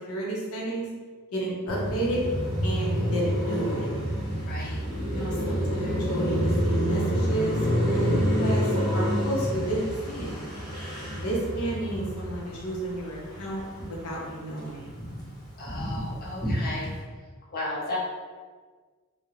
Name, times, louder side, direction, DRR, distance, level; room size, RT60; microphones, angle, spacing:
voice 1, 0.1-0.9 1.3-2.2 2.6-3.8 5.1-7.6 7.8-10.5 11.1-13.6 13.9-14.9, right 1 dB, 90° left, -3 dB, 0.7 m, -31 dB
Car passing by, 1.7-14.1 14.5-17.0, equal, 15° left, 0.9 m, -28 dB
voice 2, 4.5-4.8 15.6-16.9 17.5-18.0, left 1 dB, 45° left, -5 dB, 0.5 m, -34 dB
2.3 x 2.1 x 3.1 m, 1.5 s
head